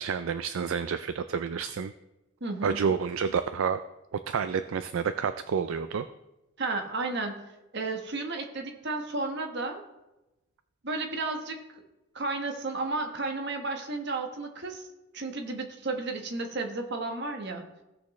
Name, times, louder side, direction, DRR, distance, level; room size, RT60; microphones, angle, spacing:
voice 1, 0.0-1.9 2.6-3.8 4.3-6.1, right 6 dB, 70° right, 10 dB, 0.4 m, -29 dB
voice 2, 2.4-2.8 6.6-7.4 7.7-9.8 10.8-11.8 12.1-14.9 15.1-17.7, right 3 dB, 55° right, 3 dB, 1.2 m, -33 dB
16.5 x 6.3 x 3.1 m, 0.98 s
head